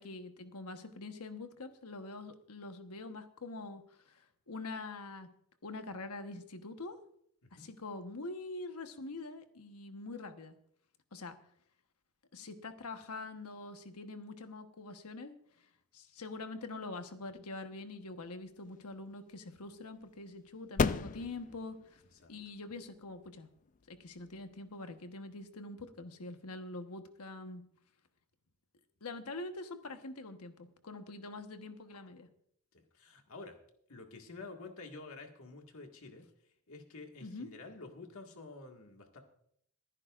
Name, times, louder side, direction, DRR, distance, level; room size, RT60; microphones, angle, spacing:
voice 1, 0.0-5.3 5.6-7.0 7.5-10.6 11.1-11.4 12.3-15.3 15.9-22.0 22.3-23.5 23.9-27.6 29.0-32.3 37.2-37.5, left 2 dB, 85° left, 7 dB, 1.2 m, -45 dB
sound 1, 18.1-25.5, left 4 dB, 35° left, 0.4 m, -39 dB
voice 2, 32.7-33.6 33.9-36.3 36.7-39.2, left 3 dB, 65° left, 3 dB, 1.9 m, -49 dB
27.0 x 9.7 x 2.5 m, 0.69 s
head